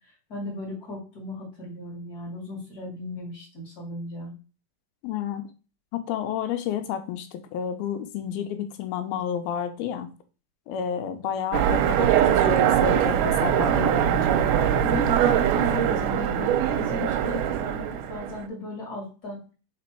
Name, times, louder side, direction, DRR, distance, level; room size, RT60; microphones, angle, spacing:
voice 1, 0.3-4.3 14.8-19.4, left 2 dB, 30° left, -2 dB, 2.4 m, -36 dB
voice 2, 5.0-5.5 5.9-10.1 10.7-14.5, left 9 dB, 85° left, 8 dB, 2.6 m, -31 dB
Train, 11.5-18.5, right 10 dB, 75° right, 2.0 m, -22 dB
5.1 x 4.2 x 4.5 m, 0.34 s
omnidirectional pair, 4.2 m